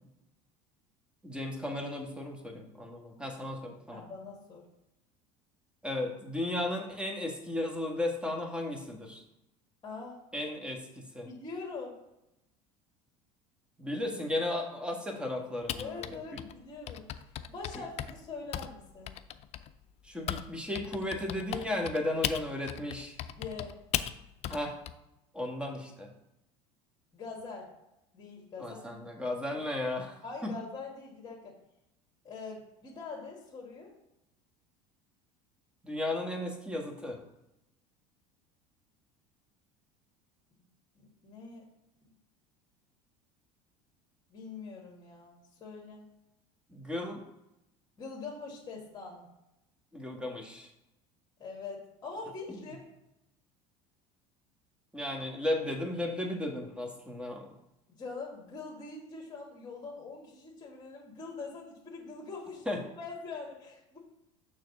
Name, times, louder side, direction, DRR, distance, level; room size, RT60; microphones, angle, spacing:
voice 1, 1.2-4.0 5.8-9.2 10.3-11.3 13.8-16.4 17.7-17.8 20.0-23.2 24.5-24.7 25.3-26.1 28.6-30.5 35.8-37.2 46.7-47.2 49.9-50.7 52.5-52.6 54.9-57.5 62.6-62.8, left 1 dB, 5° right, 1 dB, 1.6 m, -35 dB
voice 2, 3.9-4.6 9.8-10.2 11.2-12.0 15.7-17.0 17.5-19.1 23.3-23.8 27.1-27.7 28.1-29.0 30.2-31.6 32.2-33.9 41.0-41.6 44.3-46.0 48.0-49.3 51.4-52.8 58.0-64.0, left 4 dB, 25° left, -3 dB, 1.9 m, -43 dB
Typing, 15.7-20.5 20.7-24.9, left 11 dB, 45° left, 0.5 m, -37 dB
6.4 x 3.8 x 5.4 m, 0.89 s
supercardioid pair, 95°, 15 cm